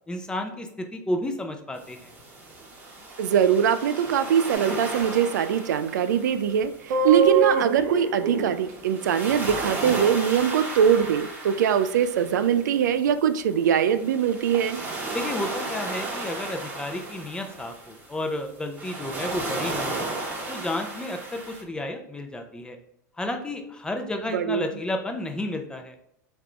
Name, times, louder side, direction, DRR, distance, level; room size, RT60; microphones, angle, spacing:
voice 1, 0.1-2.1 15.1-20.1 20.5-22.8 23.2-25.9, left 1 dB, 10° left, 5 dB, 0.5 m, -32 dB
sound 1, 1.8-21.6, right 2 dB, 15° right, 1.0 m, -35 dB
voice 2, 3.2-14.8 24.3-24.7, right 8 dB, 85° right, 11 dB, 0.4 m, -22 dB
sound 2, 4.5-4.8 6.9-8.5, right 6 dB, 70° right, 0.8 m, -24 dB
3.7 x 3.5 x 3.2 m, 0.74 s
hypercardioid pair, 120°, 9 cm